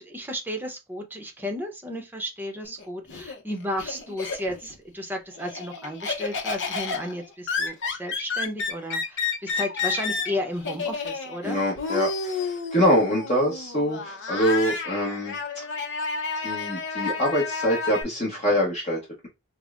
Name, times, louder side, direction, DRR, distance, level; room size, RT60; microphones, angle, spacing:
voice 1, 0.0-11.6, equal, 10° right, 0.8 m, -33 dB
Laughter, 2.6-4.8 5.1-18.0, left 4 dB, 60° left, 0.8 m, -31 dB
voice 2, 11.4-15.4 16.4-19.3, equal, 30° left, 1.1 m, -24 dB
5.2 x 2.1 x 2.5 m
head